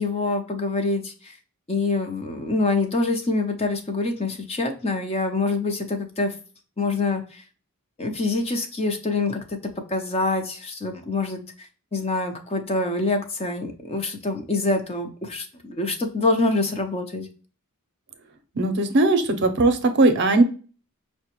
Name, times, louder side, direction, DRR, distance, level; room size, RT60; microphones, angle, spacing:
voice 1, 0.0-1.4 1.7-6.3 6.8-7.4 8.0-9.6 9.9-17.3, left 3 dB, 30° left, 4 dB, 0.6 m, -25 dB
voice 2, 18.5-20.4, right 2 dB, 50° right, 8 dB, 0.6 m, -19 dB
5.7 x 2.2 x 2.9 m, 0.38 s
head